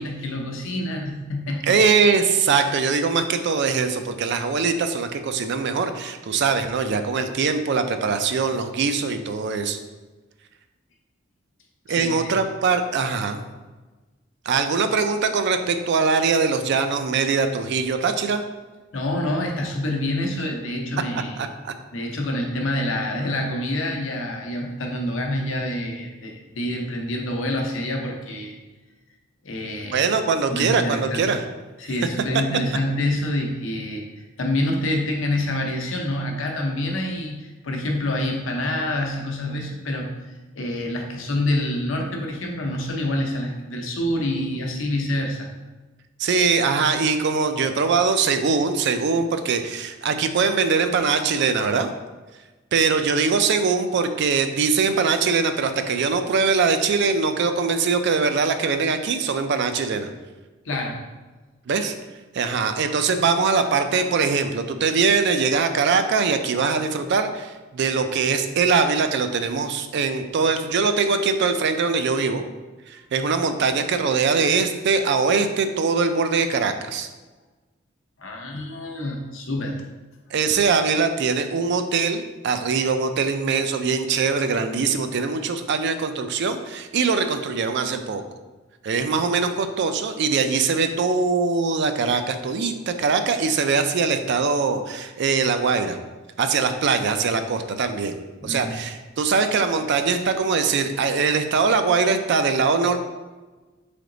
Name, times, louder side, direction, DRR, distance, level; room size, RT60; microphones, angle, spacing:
voice 1, 0.0-1.7 12.0-12.3 18.9-21.4 21.9-28.5 29.4-30.1 30.5-31.3 31.8-34.0 34.4-40.1 40.6-45.5 60.6-61.0 78.2-79.8 98.4-98.8, left 1 dB, 70° left, 1 dB, 0.7 m, -27 dB
voice 2, 1.6-9.8 11.9-13.4 14.5-18.4 21.4-21.7 29.8-31.4 32.3-32.4 46.2-51.9 52.7-60.1 61.7-61.9 62.3-72.4 72.9-77.1 80.3-88.2 88.8-96.0 96.4-98.2 98.4-103.0, right 5 dB, 60° right, 8 dB, 0.4 m, -22 dB
3.9 x 3.4 x 3.8 m, 1.2 s
head